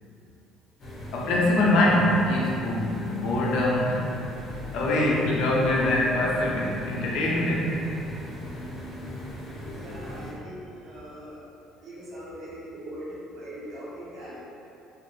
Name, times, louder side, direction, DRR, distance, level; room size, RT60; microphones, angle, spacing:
sound 1, 0.8-10.3, left 1 dB, 45° left, 0.9 m, -39 dB
voice 1, 1.1-4.1 4.7-7.8, left 1 dB, 70° left, -4 dB, 0.6 m, -23 dB
voice 2, 9.7-11.4 11.8-14.4, equal, 50° right, -9 dB, 1.1 m, -41 dB
2.6 x 2.5 x 2.6 m, 2.8 s
hypercardioid pair, 70°, 0 cm